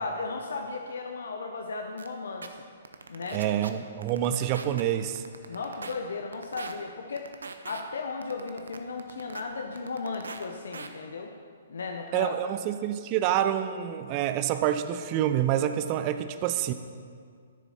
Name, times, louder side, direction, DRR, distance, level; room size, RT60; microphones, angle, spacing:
voice 1, 0.0-2.6 3.1-3.4 5.5-7.3 7.7-11.3 11.7-12.3, left 4 dB, 70° left, 3 dB, 0.7 m, -35 dB
sound 1, 2.0-2.1 2.4-2.5 2.8-3.7 4.0-4.8 5.2-5.9 6.3-6.7 7.2-7.8 8.2-9.4 9.8-10.4 10.7-10.9, right 4 dB, 75° right, 0.7 m, -40 dB
voice 2, 3.3-5.2 12.1-16.7, right 11 dB, 35° right, 10 dB, 0.5 m, -27 dB
13.0 x 7.0 x 4.3 m, 2.1 s
figure-of-eight pair, 125°, 0 cm